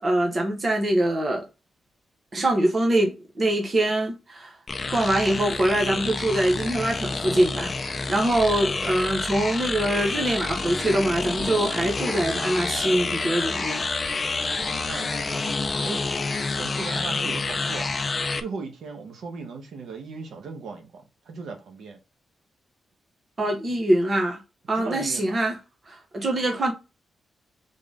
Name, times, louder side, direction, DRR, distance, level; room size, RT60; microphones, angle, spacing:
voice 1, 0.0-1.5 2.3-4.6 4.9-13.8 23.4-24.4 24.7-25.5 25.9-26.7, right 1 dB, 30° right, 0.9 m, -24 dB
sound 1, 4.7-18.4, left 3 dB, 25° left, 0.4 m, -28 dB
voice 2, 14.5-16.0 16.6-17.9 18.4-22.0 23.7-23.8 24.7-25.5, right 4 dB, 75° right, 1.2 m, -38 dB
3.8 x 3.7 x 3.6 m
wide cardioid pair, 160°, 0 cm